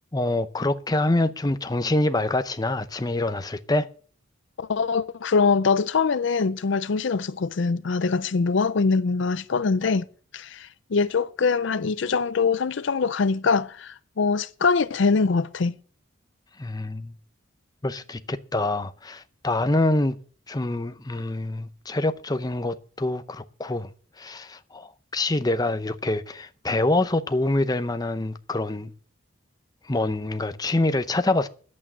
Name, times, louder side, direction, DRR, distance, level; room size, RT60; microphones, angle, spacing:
voice 1, 0.1-3.9 16.6-17.2 17.8-20.2 20.5-23.9 24.2-28.9 29.8-31.5, left 2 dB, 20° left, 0.6 m, -25 dB
voice 2, 4.6-10.1 10.3-15.8, left 4 dB, 65° left, 0.5 m, -23 dB
11.0 x 8.5 x 7.4 m
head